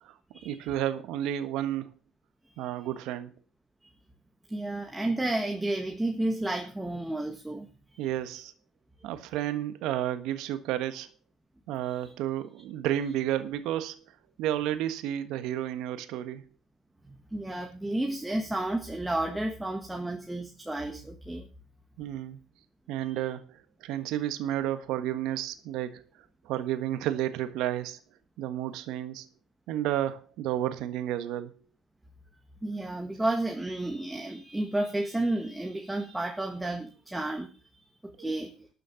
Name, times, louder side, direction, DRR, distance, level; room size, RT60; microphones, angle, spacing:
voice 1, 0.4-1.9 2.6-3.3 8.0-8.5 9.0-11.1 11.7-14.0 14.4-16.4 22.0-22.4 22.9-26.1 26.4-28.0 28.4-29.3 29.7-31.6 38.2-38.3, right 12 dB, 80° right, 11 dB, 1.5 m, -31 dB
voice 2, 4.5-7.7 11.9-12.1 17.1-21.5 32.6-37.6 38.0-38.7, right 1 dB, 5° right, 4 dB, 1.6 m, -32 dB
13.0 x 6.9 x 7.1 m, 0.36 s
cardioid pair, 120°, 0 cm